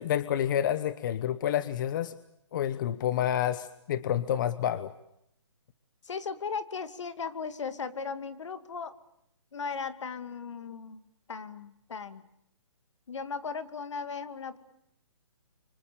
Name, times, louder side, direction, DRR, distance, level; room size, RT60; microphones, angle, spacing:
voice 1, 0.0-2.1 2.5-4.9, left 10 dB, 40° left, 14 dB, 1.1 m, -29 dB
voice 2, 6.0-8.9 9.5-12.2 13.1-14.6, left 5 dB, 70° left, 11 dB, 2.4 m, -37 dB
29.5 x 25.5 x 6.9 m, 0.75 s
hypercardioid pair, 155°, 16 cm